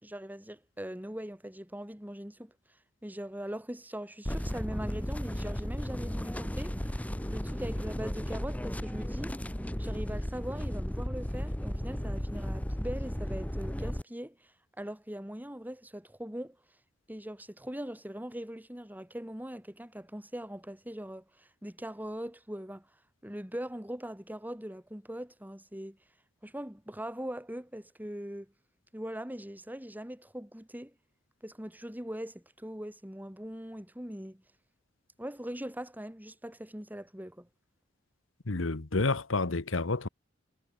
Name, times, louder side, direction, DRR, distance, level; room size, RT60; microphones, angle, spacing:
voice 1, 0.0-2.5 3.0-6.7 7.3-9.3 9.8-16.6 17.1-22.9 23.2-26.0 26.4-28.5 28.9-30.9 31.4-34.4 35.2-37.5, equal, 10° right, 3.9 m, -41 dB
sound 1, 4.3-14.0, equal, 10° left, 1.1 m, -34 dB
voice 2, 38.5-40.1, left 3 dB, 80° left, 1.3 m, -29 dB
head